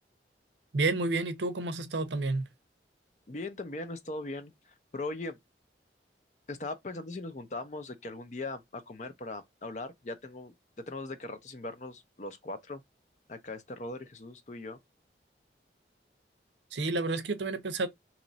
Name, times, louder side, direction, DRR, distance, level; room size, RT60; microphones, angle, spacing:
voice 1, 0.7-2.5 16.7-17.9, right 3 dB, 90° right, 0.6 m, -30 dB
voice 2, 3.3-5.4 6.5-10.5 10.9-12.8 13.3-14.8, left 2 dB, 40° left, 0.5 m, -39 dB
3.0 x 2.4 x 3.9 m
head